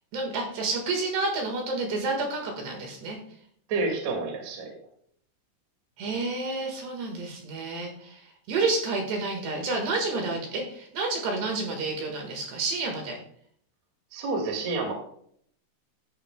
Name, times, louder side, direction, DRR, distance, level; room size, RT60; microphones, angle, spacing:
voice 1, 0.1-3.2 6.0-13.2, right 3 dB, 65° right, 2 dB, 3.4 m, -30 dB
voice 2, 3.7-4.7 14.1-14.9, right 3 dB, 45° right, 2 dB, 2.4 m, -29 dB
13.5 x 10.0 x 2.3 m, 0.65 s
omnidirectional pair, 5.9 m